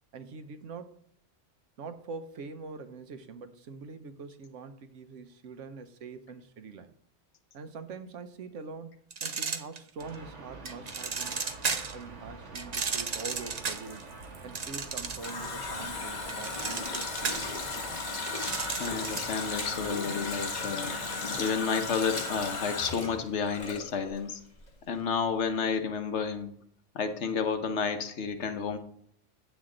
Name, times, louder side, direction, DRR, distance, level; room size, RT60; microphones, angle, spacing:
voice 1, 0.1-1.0 1.8-6.9 7.5-11.5 11.9-14.1 14.4-17.5 17.7-18.2, right 4 dB, 90° right, 10 dB, 1.1 m, -44 dB
sound 1, 9.1-10.1 10.7-12.0 12.5-15.5 15.8-19.4, right 5 dB, 40° right, 0.7 m, -34 dB
sound 2, 10.0-22.6, right 3 dB, 70° right, 1.6 m, -46 dB
Water tap faucet, 14.7-24.3 24.6-24.7, left 3 dB, 35° left, 1.4 m, -35 dB
voice 2, 18.7-21.0 21.4-24.4 24.9-26.6 26.9-28.8, left 5 dB, 70° left, 8 dB, 1.1 m, -31 dB
9.1 x 7.3 x 3.8 m, 0.65 s
omnidirectional pair, 1.2 m